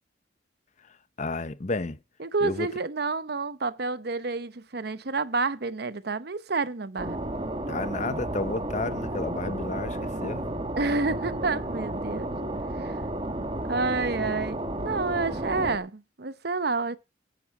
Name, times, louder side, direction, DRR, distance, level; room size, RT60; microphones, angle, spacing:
voice 1, 1.2-2.0 2.4-2.7 7.7-10.4, left 3 dB, 40° left, 0.8 m, -31 dB
voice 2, 2.2-7.2 10.8-12.3 12.8-13.0 13.7-17.0, right 3 dB, 60° right, 0.9 m, -29 dB
sound 1, 7.0-15.8, right 1 dB, 30° right, 1.9 m, -32 dB
11.0 x 9.2 x 6.1 m
head